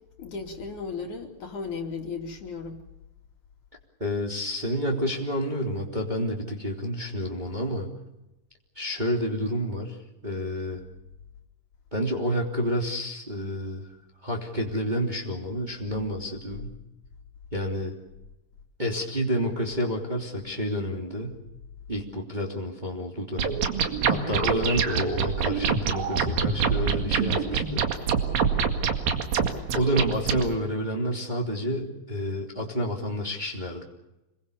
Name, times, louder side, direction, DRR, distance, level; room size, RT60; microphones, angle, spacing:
voice 1, 0.2-2.8, left 4 dB, 60° left, 2 dB, 4.0 m, -35 dB
voice 2, 4.0-7.9 8.7-10.0 10.2-10.8 11.9-13.8 14.2-16.7 17.5-17.9 18.8-21.4 21.9-23.7 24.1-27.8 29.7-33.8, equal, 15° right, 0 dB, 2.8 m, -29 dB
sound 1, 23.4-30.4, right 6 dB, 80° right, 3.8 m, -25 dB
28.0 x 21.5 x 7.0 m, 0.97 s
omnidirectional pair, 4.1 m